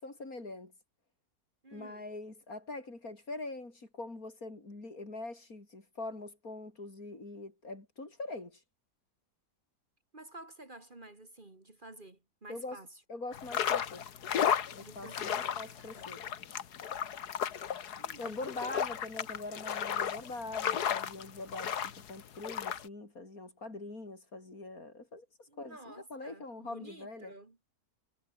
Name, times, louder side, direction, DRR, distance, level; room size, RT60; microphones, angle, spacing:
voice 1, 0.0-0.7 1.7-8.6 12.5-12.8 13.1-14.1 14.7-16.2 18.2-27.3, left 2 dB, 65° left, 5.5 m, -43 dB
voice 2, 1.6-2.1 10.1-13.0 14.8-16.2 18.0-18.4 25.5-27.6, right 2 dB, 30° right, 2.4 m, -51 dB
sound 1, 13.3-22.9, left 8 dB, 85° left, 1.8 m, -34 dB
omnidirectional pair, 1.6 m